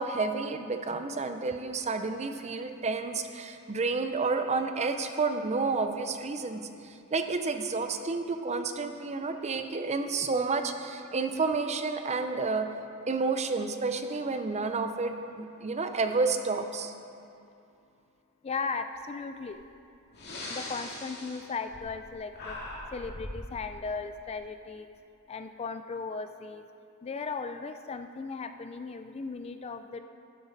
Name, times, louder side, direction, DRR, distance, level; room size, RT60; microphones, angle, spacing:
voice 1, 0.0-6.7 7.1-12.7 13.1-16.9, right 4 dB, 30° right, 7 dB, 0.6 m, -30 dB
voice 2, 18.4-19.6 20.5-22.6 22.9-24.9 25.3-26.7 27.0-30.0, left 4 dB, 30° left, 8 dB, 0.3 m, -37 dB
Breathing, 19.5-19.6 20.1-22.1 22.3-23.4, left 1 dB, 50° left, 2.1 m, -40 dB
12.0 x 9.1 x 4.0 m, 2.6 s
head